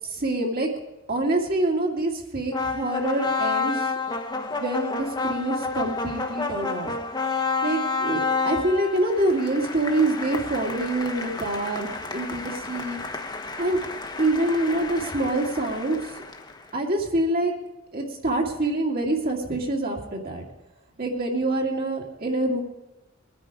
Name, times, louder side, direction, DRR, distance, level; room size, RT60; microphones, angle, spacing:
voice 1, 0.0-0.7 1.1-3.8 4.3-6.9 7.6-13.0 13.6-13.8 14.2-16.0 16.7-17.5 17.9-20.4 21.0-22.6, right 2 dB, 50° right, -1 dB, 2.3 m, -26 dB
sound 1, 2.5-16.7, left 4 dB, 20° left, 1.1 m, -30 dB
21.5 x 10.0 x 4.9 m, 1.0 s
head